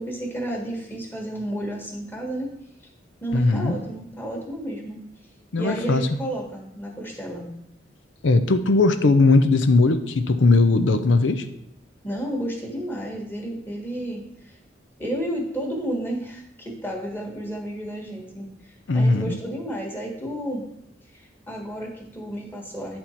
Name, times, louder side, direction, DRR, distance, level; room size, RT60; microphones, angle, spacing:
voice 1, 0.0-2.5 3.2-5.0 5.6-7.5 12.0-14.5 15.0-20.6 21.1-23.0, right 1 dB, 10° left, 0 dB, 1.5 m, -32 dB
voice 2, 3.3-3.8 5.5-6.0 8.2-11.4 18.9-19.4, left 3 dB, 85° left, 10 dB, 0.6 m, -19 dB
9.4 x 4.4 x 4.4 m, 0.76 s
head